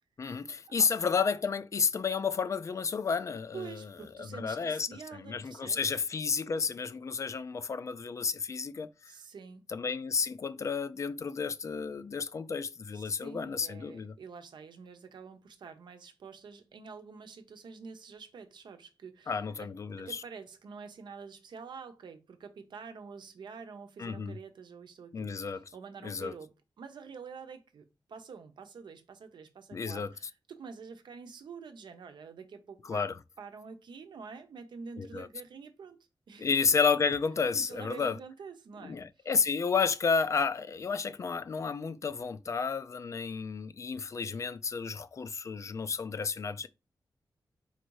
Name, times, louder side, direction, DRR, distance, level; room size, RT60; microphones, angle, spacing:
voice 1, 0.2-3.8 4.2-8.9 9.7-14.1 19.3-20.2 24.0-24.4 25.1-25.6 26.0-26.3 29.7-30.1 32.8-33.1 35.0-35.3 36.4-38.2 38.8-46.7, left 5 dB, 40° left, 0.3 m, -31 dB
voice 2, 3.5-6.0 9.1-9.7 12.9-19.7 20.0-33.1 33.4-36.5 37.5-39.3, right 5 dB, 85° right, 0.7 m, -47 dB
4.3 x 2.6 x 4.6 m
wide cardioid pair, 180°, 8 cm